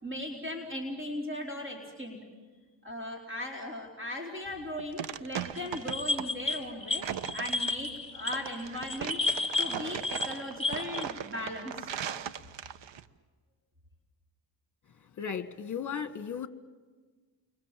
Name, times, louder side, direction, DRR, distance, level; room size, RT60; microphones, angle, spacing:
voice 1, 0.0-2.2 2.8-7.1 7.3-9.2 9.6-12.1, left 1 dB, 25° right, 0 dB, 4.5 m, -38 dB
sound 1, 4.5-13.0, right 9 dB, 65° right, 1.1 m, -39 dB
sound 2, 5.6-11.0, left 3 dB, 10° left, 2.3 m, -32 dB
voice 2, 15.2-16.5, left 7 dB, 40° left, 11 dB, 1.7 m, -35 dB
29.5 x 24.5 x 7.7 m, 1.4 s
cardioid pair, 100°, 46 cm